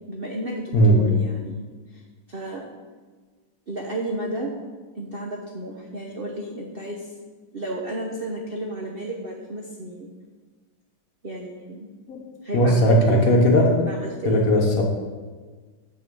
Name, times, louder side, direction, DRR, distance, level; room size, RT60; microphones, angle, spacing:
voice 1, 0.1-1.6 1.9-2.0 2.3-2.6 3.7-4.5 5.0-7.1 7.5-10.1 11.2-11.9 12.4-13.4 13.8-14.5, right 1 dB, 60° right, 0 dB, 0.6 m, -32 dB
voice 2, 0.7-1.1 12.1-12.2 12.5-13.8 14.2-14.8, equal, 55° left, 1 dB, 1.2 m, -17 dB
6.9 x 6.2 x 5.3 m, 1.4 s
omnidirectional pair, 2.1 m